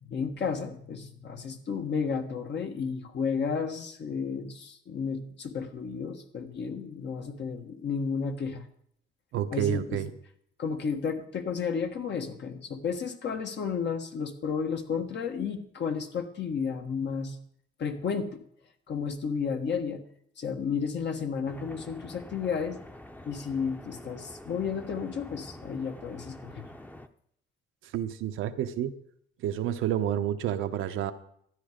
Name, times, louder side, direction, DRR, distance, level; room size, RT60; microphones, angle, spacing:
voice 1, 0.0-8.6 9.5-10.0 10.6-17.4 17.8-18.4 18.9-20.0 20.4-22.8 23.2-26.7, left 6 dB, 60° left, 5 dB, 1.6 m, -32 dB
voice 2, 9.3-10.1 27.8-28.9 29.4-31.1, right 11 dB, 85° right, 8 dB, 0.9 m, -29 dB
sound 1, 21.4-27.1, left 1 dB, 10° left, 0.8 m, -46 dB
13.0 x 9.7 x 5.1 m, 0.69 s
cardioid pair, 90°, 20 cm